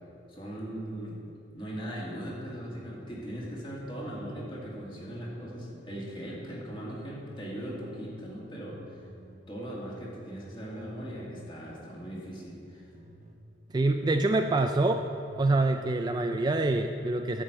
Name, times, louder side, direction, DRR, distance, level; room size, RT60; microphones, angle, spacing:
voice 1, 0.3-1.2 1.5-9.0 9.5-12.9, equal, 25° left, -5 dB, 2.3 m, -39 dB
sound 1, 2.7-5.4 5.7-7.4 7.7-13.4 13.7-15.4 15.7-16.8, left 1 dB, 40° right, 1.0 m, -52 dB
voice 2, 13.7-15.1 15.4-17.4, right 2 dB, 20° right, 6 dB, 0.3 m, -26 dB
11.5 x 5.2 x 8.0 m, 2.7 s
head